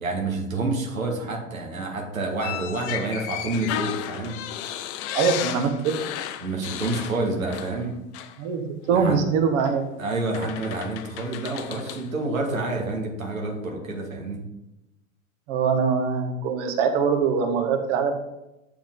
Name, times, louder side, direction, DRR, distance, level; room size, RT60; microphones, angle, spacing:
voice 1, 0.0-4.4 6.4-8.0 8.9-9.2 10.0-14.4, right 2 dB, 85° right, 1 dB, 1.8 m, -28 dB
sound 1, 2.4-7.9 8.1-8.4 9.6-9.7 10.3-12.1, left 11 dB, 60° left, 0.8 m, -34 dB
voice 2, 5.1-6.0 8.4-9.8 15.5-18.1, right 6 dB, 60° right, 6 dB, 1.5 m, -23 dB
7.7 x 6.9 x 3.8 m, 0.91 s
hypercardioid pair, 85°, 40 cm